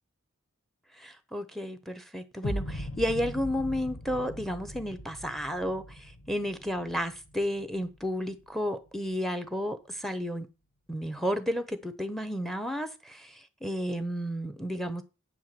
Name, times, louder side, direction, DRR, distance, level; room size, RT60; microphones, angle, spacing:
voice 1, 1.0-10.5 10.9-15.0, equal, ahead, 0.9 m, -32 dB
sound 1, 2.4-8.4, equal, 55° left, 1.3 m, -40 dB
9.0 x 4.7 x 7.6 m
head